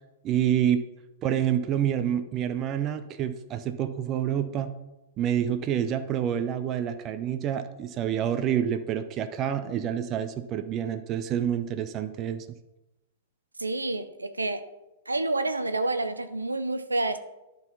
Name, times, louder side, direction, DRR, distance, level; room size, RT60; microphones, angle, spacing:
voice 1, 0.2-0.8 1.2-4.7 5.2-12.5, right 9 dB, 30° right, 0.6 m, -27 dB
voice 2, 13.6-14.6 15.1-17.2, right 2 dB, 90° right, 0.6 m, -28 dB
11.0 x 4.0 x 5.3 m
figure-of-eight pair, 105°, 0 cm